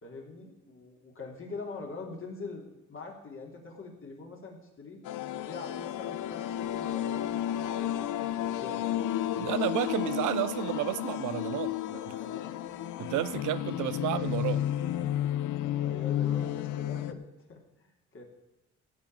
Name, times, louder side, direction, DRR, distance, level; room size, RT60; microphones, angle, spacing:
voice 1, 0.0-5.0 5.4-8.8 12.2-12.6 15.5-18.2, left 3 dB, 45° left, 3.2 m, -44 dB
sound 1, 5.1-17.1, left 12 dB, 85° left, 0.6 m, -32 dB
voice 2, 9.4-12.2 13.0-14.7, right 14 dB, 85° right, 0.6 m, -32 dB
14.5 x 5.0 x 8.9 m
cardioid pair, 90°, 30 cm